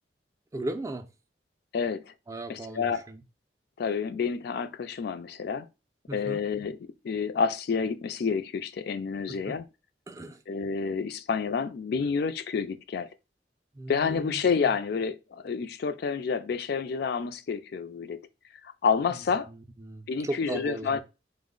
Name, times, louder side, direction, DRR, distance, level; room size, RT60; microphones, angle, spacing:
voice 1, 0.5-1.1 2.3-3.2 6.1-6.4 9.4-9.6 10.1-10.4 13.7-14.8 19.5-21.0, right 1 dB, 20° right, 0.4 m, -37 dB
voice 2, 1.7-2.1 2.5-3.0 3.8-5.7 6.1-6.8 7.0-9.6 10.5-13.1 13.9-18.2 18.6-19.5 20.1-21.0, left 5 dB, 60° left, 0.4 m, -29 dB
4.0 x 2.0 x 3.7 m
head